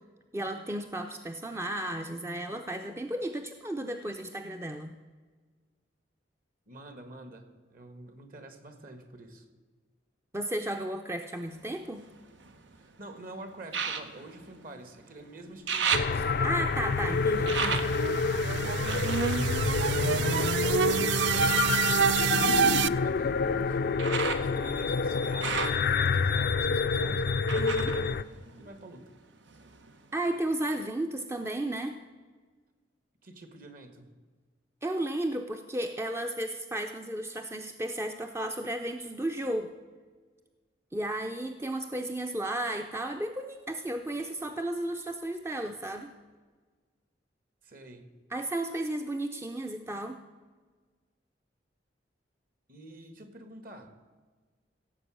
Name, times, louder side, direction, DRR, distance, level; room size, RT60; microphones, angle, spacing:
voice 1, 0.3-4.9 10.3-12.0 16.2-17.8 27.6-27.9 30.1-32.0 34.8-39.7 40.9-46.1 48.3-50.2, right 1 dB, 15° right, 5 dB, 0.5 m, -34 dB
voice 2, 6.7-9.5 12.7-16.5 18.1-20.6 20.9-24.0 24.3-29.2 33.2-34.1 47.6-48.0 52.7-54.0, right 2 dB, 50° right, 8 dB, 1.5 m, -47 dB
sound 1, 11.5-12.9 13.7-15.2 15.4-20.6 21.3-29.1 29.4-30.2 30.7-30.8, right 5 dB, 85° right, 1.0 m, -36 dB
sound 2, 15.9-28.2, left 4 dB, 55° left, 0.4 m, -28 dB
sound 3, 16.5-22.9, right 8 dB, 70° right, 0.3 m, -28 dB
16.5 x 7.7 x 6.2 m, 1.4 s
head